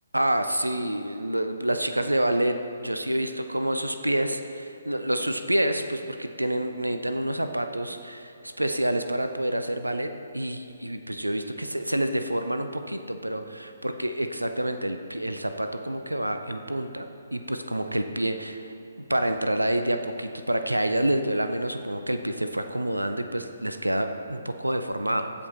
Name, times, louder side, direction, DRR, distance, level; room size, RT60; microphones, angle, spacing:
voice 1, 0.1-18.7 19.1-25.3, right 1 dB, 90° right, 8 dB, 0.5 m, -28 dB
15.5 x 5.2 x 4.2 m, 2.8 s
figure-of-eight pair, 135°, 0 cm